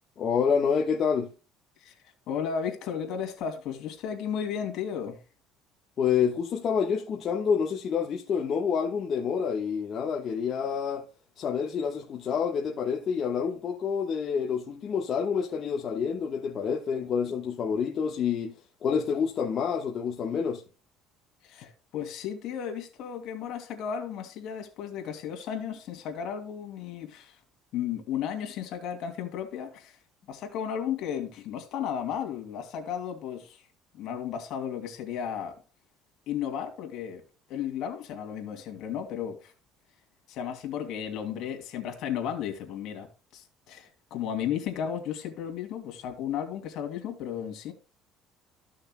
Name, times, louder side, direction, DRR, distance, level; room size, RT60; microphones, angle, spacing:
voice 1, 0.2-1.3 6.0-11.1 11.4-18.5 18.8-20.6, left 6 dB, 40° left, 1.2 m, -28 dB
voice 2, 2.3-5.2 21.4-27.4 27.7-30.0 30.3-33.7 33.9-35.6 36.3-37.2 37.5-39.5 40.3-43.1 43.3-47.7, left 8 dB, 60° left, 2.5 m, -34 dB
14.0 x 6.5 x 2.2 m
cardioid pair, 150°, 0 cm